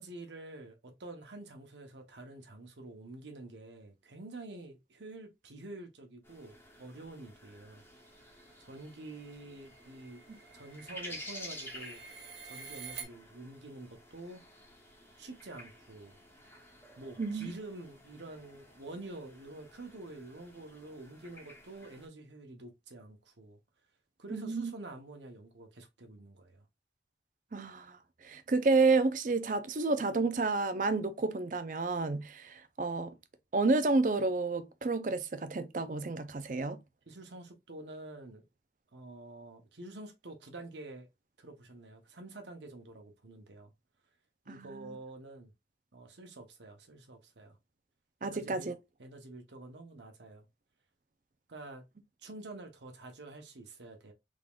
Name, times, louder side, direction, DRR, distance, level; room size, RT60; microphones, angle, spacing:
voice 1, 0.0-7.8 8.6-10.2 10.5-12.0 12.4-14.4 15.2-16.2 17.0-23.6 24.2-26.6 37.1-38.4 38.9-41.1 41.4-43.7 44.4-45.5 45.9-47.6 48.2-48.7 49.0-50.5 51.5-51.8 52.2-54.1, right 2 dB, 90° right, 1.0 m, -48 dB
sound 1, 6.2-22.1, left 1 dB, 15° left, 1.1 m, -52 dB
sound 2, 8.3-13.0, right 6 dB, 70° right, 1.4 m, -49 dB
voice 2, 24.3-24.7 27.5-33.1 33.5-36.8 44.5-45.0 48.2-48.7, right 3 dB, 45° right, 0.5 m, -30 dB
3.7 x 3.6 x 2.4 m
head